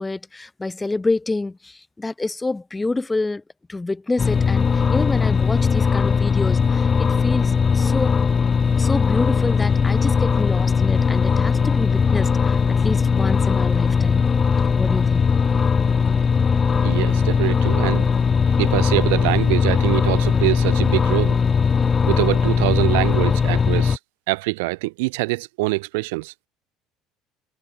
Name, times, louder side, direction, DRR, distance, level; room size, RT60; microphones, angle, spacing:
voice 1, 0.0-3.4 3.7-8.2 8.8-14.3 14.8-15.2, left 2 dB, 15° left, 1.5 m, -27 dB
sound 1, 4.2-24.0, left 6 dB, 30° left, 0.7 m, -19 dB
voice 2, 16.8-18.1 18.6-21.4 22.0-24.0 24.3-26.3, right 25 dB, 80° right, 1.5 m, -24 dB
hypercardioid pair, 75°, 0 cm